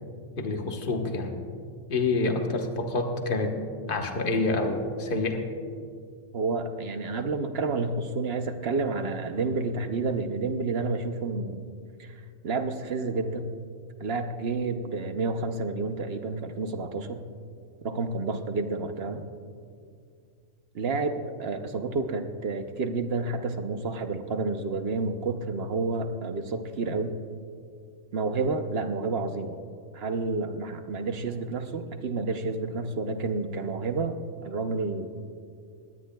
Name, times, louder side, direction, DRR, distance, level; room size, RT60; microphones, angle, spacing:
voice 1, 0.4-1.4 1.9-3.6 3.9-5.4, left 3 dB, 45° left, 3 dB, 1.3 m, -27 dB
voice 2, 6.3-11.7 12.0-12.2 12.4-13.5 14.0-17.2 17.8-19.2 20.7-27.1 28.1-29.6 29.9-35.1, right 3 dB, 55° right, 7 dB, 0.9 m, -30 dB
20.5 x 17.0 x 2.3 m, 2.3 s
omnidirectional pair, 1.3 m